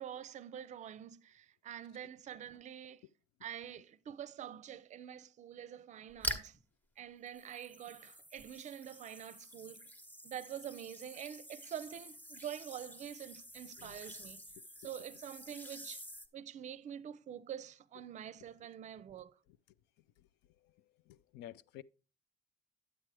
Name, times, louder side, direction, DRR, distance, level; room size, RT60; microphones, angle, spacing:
voice 1, 0.0-3.1 3.4-6.6 7.0-9.9 10.2-14.4 14.8-16.0 16.3-19.4, right 9 dB, 45° right, 0.5 m, -46 dB
sound 1, 6.1-6.6 7.3-16.3, equal, 10° left, 1.0 m, -47 dB
voice 2, 20.6-21.8, left 12 dB, 85° left, 0.4 m, -53 dB
9.7 x 7.5 x 3.3 m
cardioid pair, 110°, 17 cm